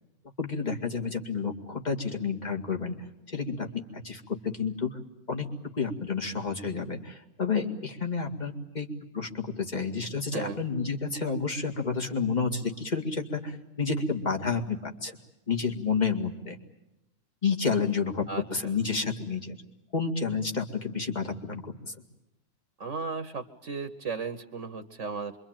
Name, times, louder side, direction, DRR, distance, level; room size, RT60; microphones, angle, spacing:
voice 1, 0.4-3.0 3.3-5.0 5.3-5.5 5.7-8.9 9.1-15.2 15.5-16.6 17.4-19.6 19.9-21.9, left 5 dB, 30° left, 3 dB, 2.2 m, -30 dB
voice 2, 18.3-18.7 22.8-25.4, right 4 dB, 60° right, 9 dB, 1.5 m, -35 dB
26.5 x 24.0 x 9.0 m, 0.91 s
omnidirectional pair, 1.5 m